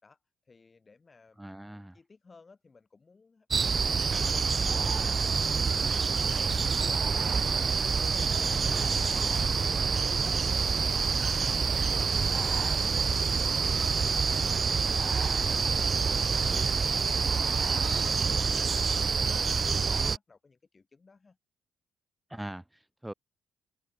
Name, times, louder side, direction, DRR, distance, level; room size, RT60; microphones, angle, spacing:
voice 1, 0.4-1.4 1.7-4.1 15.1-21.4, left 4 dB, 30° left, 5.5 m, -59 dB
voice 2, 1.4-2.0 22.3-23.1, right 1 dB, 5° right, 1.1 m, -41 dB
sound 1, 3.5-20.2, right 5 dB, 40° right, 0.6 m, -27 dB
sound 2, 5.1-5.6 6.2-10.0 10.6-11.3 11.7-12.2 12.7-13.6 14.0-16.5 16.9-17.0 17.3-17.4, right 10 dB, 70° right, 1.5 m, -55 dB
cardioid pair, 90°, 0 cm